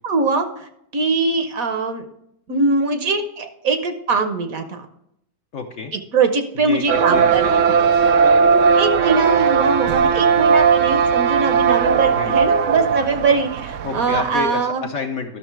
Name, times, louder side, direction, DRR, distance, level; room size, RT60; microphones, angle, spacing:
voice 1, 0.0-0.7 0.9-2.0 2.5-4.9 6.1-7.6 8.8-14.9, right 4 dB, 60° right, 7 dB, 1.1 m, -21 dB
voice 2, 5.5-5.9 6.5-8.1 12.1-12.4 13.8-15.4, left 5 dB, 55° left, 3 dB, 1.0 m, -29 dB
sound 1, 6.9-14.4, right 6 dB, 80° right, 0.6 m, -17 dB
11.0 x 6.3 x 4.6 m, 0.76 s
omnidirectional pair, 1.9 m